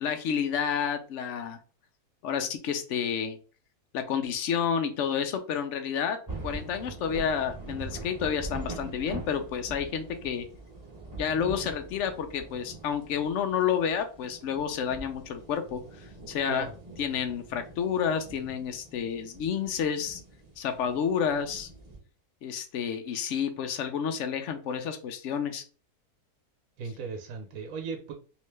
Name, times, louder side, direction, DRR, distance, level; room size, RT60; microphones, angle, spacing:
voice 1, 0.0-1.6 2.2-3.4 3.9-6.2 6.4-10.5 11.2-16.7 17.0-20.2 20.6-21.7 22.4-25.6, left 7 dB, 65° left, 0.8 m, -30 dB
sound 1, 6.3-22.0, right 2 dB, 15° right, 1.0 m, -43 dB
voice 2, 26.8-28.1, right 5 dB, 70° right, 1.1 m, -36 dB
3.2 x 2.9 x 3.1 m
omnidirectional pair, 1.6 m